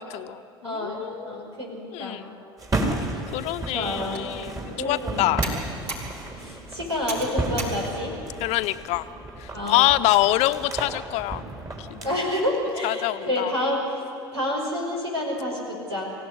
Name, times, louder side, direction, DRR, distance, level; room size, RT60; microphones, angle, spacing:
voice 1, 0.0-1.5 1.9-2.3 3.3-4.5 4.8-5.5 8.4-9.0 9.4-11.4 11.8-12.2 12.8-13.5, left 16 dB, 55° left, 11 dB, 0.9 m, -25 dB
voice 2, 0.6-2.2 3.7-4.3 4.7-5.3 6.4-8.1 9.5-9.9 12.0-14.0 14.3-16.1, left 1 dB, 85° right, -1 dB, 5.5 m, -29 dB
sound 1, 2.6-12.2, right 2 dB, 25° right, 4.2 m, -33 dB
Computer keyboard, 4.0-9.1, right 2 dB, 60° right, 6.5 m, -38 dB
24.5 x 16.5 x 9.9 m, 2.7 s
figure-of-eight pair, 65°, 14 cm